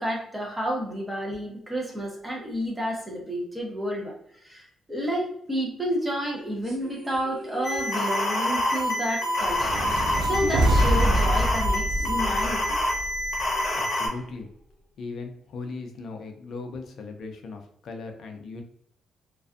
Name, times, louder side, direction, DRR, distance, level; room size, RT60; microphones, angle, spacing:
voice 1, 0.0-4.1 4.4-9.8 10.2-12.8, equal, 10° right, -2 dB, 0.7 m, -30 dB
sound 1, 6.6-11.3 11.5-11.6 11.9-14.6, right 1 dB, 60° right, 1.1 m, -44 dB
sound 2, 7.6-14.1, left 1 dB, 25° left, 0.9 m, -27 dB
sound 3, 9.4-13.7, right 1 dB, 80° right, 0.3 m, -25 dB
voice 2, 13.7-14.5 15.0-18.6, left 3 dB, 55° left, 4 dB, 0.4 m, -38 dB
2.5 x 2.2 x 2.4 m, 0.69 s
cardioid pair, 170°, 0 cm